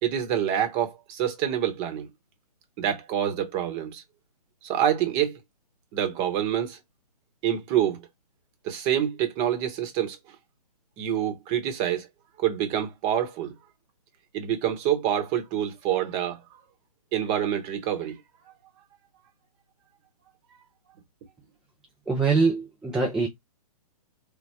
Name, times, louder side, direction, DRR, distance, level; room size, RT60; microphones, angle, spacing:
voice 1, 0.0-2.1 2.8-4.0 4.6-5.4 5.9-6.8 7.4-8.0 8.6-10.2 11.0-12.1 12.4-13.5 14.3-16.4 17.1-18.2, right 10 dB, 25° right, 0.9 m, -26 dB
voice 2, 22.1-23.3, right 4 dB, ahead, 0.4 m, -23 dB
3.6 x 2.1 x 4.2 m
figure-of-eight pair, 120°, 20 cm